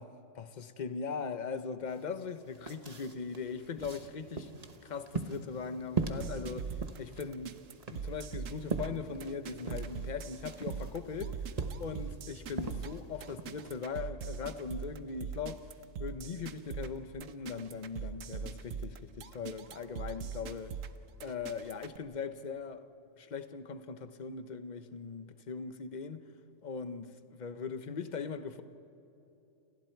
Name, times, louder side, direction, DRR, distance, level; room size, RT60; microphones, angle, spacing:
voice 1, 0.4-4.6 4.8-7.6 7.9-11.4 11.8-15.7 16.0-20.8 21.2-22.9 23.2-26.3 26.6-28.6, left 5 dB, 40° left, 1.0 m, -40 dB
sound 1, 1.9-2.0 2.3-13.8, right 3 dB, 35° right, 1.2 m, -41 dB
sound 2, 6.0-22.0, right 6 dB, 85° right, 1.2 m, -41 dB
29.5 x 27.5 x 4.6 m
omnidirectional pair, 1.3 m